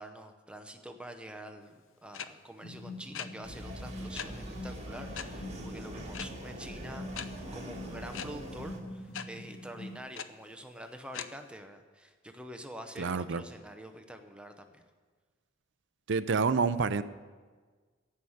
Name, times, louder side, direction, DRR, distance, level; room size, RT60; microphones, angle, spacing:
voice 1, 0.0-1.7 2.0-14.8, right 1 dB, 5° right, 6 dB, 0.8 m, -46 dB
sound 1, 2.1-2.3 3.1-3.3 4.1-4.3 5.1-5.3 6.1-6.3 7.1-7.3 8.1-8.3 9.1-9.2 10.1-10.2 11.1-11.3, left 8 dB, 85° left, 0.6 m, -38 dB
sound 2, 2.6-10.0, left 1 dB, 35° left, 1.7 m, -45 dB
sound 3, 3.4-8.8, right 1 dB, 35° right, 1.9 m, -44 dB
voice 2, 13.0-13.4 16.1-17.0, right 5 dB, 65° right, 13 dB, 0.5 m, -28 dB
16.0 x 5.7 x 7.9 m, 1.5 s
head